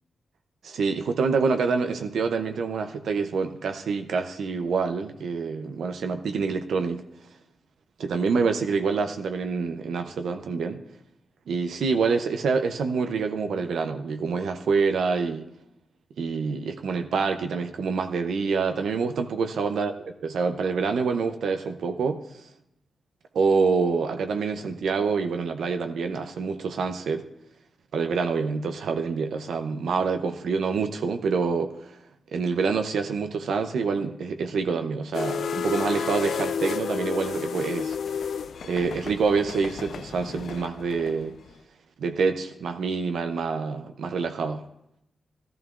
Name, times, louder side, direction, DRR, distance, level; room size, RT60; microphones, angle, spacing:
voice 1, 0.6-7.0 8.0-10.8 11.5-15.5 16.2-19.9 20.2-22.5 23.3-27.3 27.9-32.0 32.3-38.3 38.6-41.3 42.0-44.6, right 5 dB, 85° right, 7 dB, 0.5 m, -26 dB
sound 1, 35.1-41.5, left 7 dB, 75° left, 0.4 m, -32 dB
14.0 x 12.5 x 2.4 m, 0.82 s
cardioid pair, 85°, 0 cm